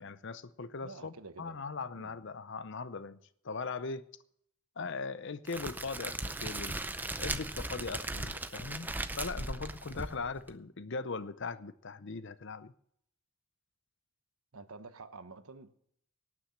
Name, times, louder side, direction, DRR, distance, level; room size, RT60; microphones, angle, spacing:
voice 1, 0.0-3.2 3.4-4.1 4.8-6.8 7.2-8.9 9.1-12.7, left 4 dB, 55° left, 0.7 m, -39 dB
voice 2, 0.8-1.6 1.9-2.2 14.5-15.7, right 3 dB, 80° right, 1.1 m, -49 dB
Crackle, 5.5-10.5, right 2 dB, 10° right, 0.5 m, -38 dB
18.0 x 6.3 x 7.2 m
head